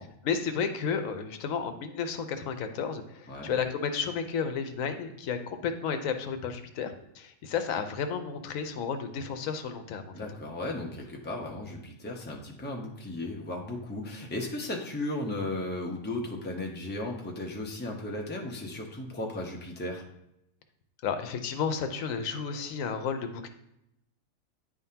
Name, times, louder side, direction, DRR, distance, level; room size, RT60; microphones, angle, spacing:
voice 1, 0.2-10.1 21.0-23.5, left 6 dB, 80° left, 7 dB, 1.0 m, -32 dB
voice 2, 10.1-20.0, left 1 dB, 10° left, 0 dB, 0.6 m, -35 dB
9.7 x 3.6 x 2.8 m, 0.80 s
omnidirectional pair, 1.4 m